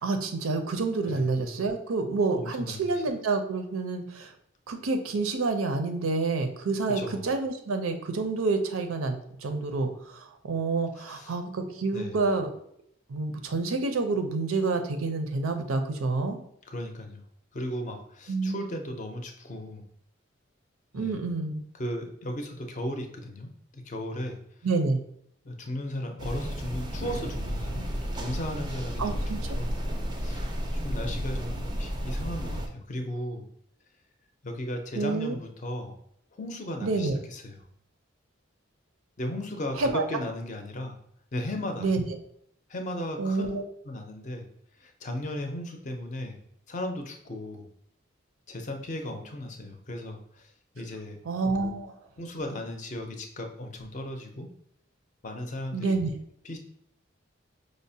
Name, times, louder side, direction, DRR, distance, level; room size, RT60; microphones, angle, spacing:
voice 1, 0.0-4.3 4.7-12.5 13.1-16.4 18.3-18.6 20.9-21.6 24.6-25.0 29.0-29.4 34.9-35.3 36.8-37.2 39.8-40.0 41.8-42.0 43.2-43.6 51.3-51.9 55.7-56.1, right 3 dB, 90° right, 6 dB, 0.5 m, -28 dB
voice 2, 2.3-3.0 6.9-7.3 11.1-11.3 11.9-12.2 16.7-17.2 17.5-19.9 20.9-21.2 21.8-24.4 25.4-27.9 28.1-29.8 30.2-30.4 30.7-33.5 34.4-36.0 36.3-37.6 39.2-41.0 41.3-41.9 42.7-43.6 43.8-44.5 44.8-46.4 46.7-47.6 48.5-51.2 51.6-51.7 52.2-54.5 55.2-56.0 56.4-56.6, left 1 dB, 35° left, 4 dB, 0.5 m, -36 dB
sound 1, 26.2-32.7, equal, 20° right, 0.4 m, -32 dB
4.9 x 2.0 x 2.6 m, 0.70 s
head